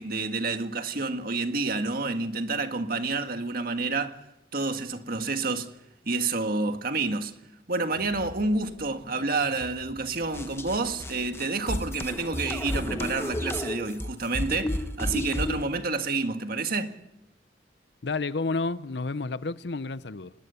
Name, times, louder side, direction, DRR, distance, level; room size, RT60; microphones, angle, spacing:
voice 1, 0.0-4.2 4.5-5.7 6.0-7.3 7.7-17.0, right 3 dB, 55° right, 1.7 m, -29 dB
sound 1, 7.9-14.0, equal, 80° right, 4.8 m, -51 dB
sound 2, 10.3-15.7, left 1 dB, 15° left, 1.2 m, -32 dB
voice 2, 18.0-20.3, left 3 dB, 65° left, 0.8 m, -30 dB
26.0 x 20.5 x 7.0 m
head